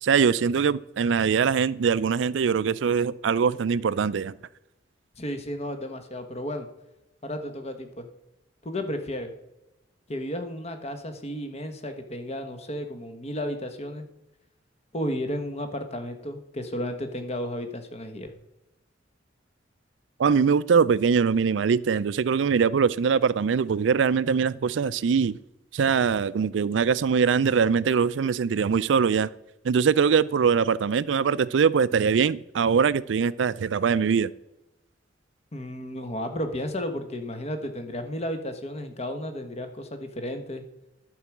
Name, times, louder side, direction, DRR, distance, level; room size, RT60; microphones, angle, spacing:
voice 1, 0.0-4.3 20.2-25.4 25.7-29.3 29.6-34.3, right 6 dB, 75° right, 0.4 m, -22 dB
voice 2, 5.2-6.7 7.2-8.1 8.6-9.3 10.1-14.0 14.9-18.3 35.5-40.6, left 1 dB, 35° left, 1.2 m, -33 dB
11.0 x 4.7 x 7.2 m
head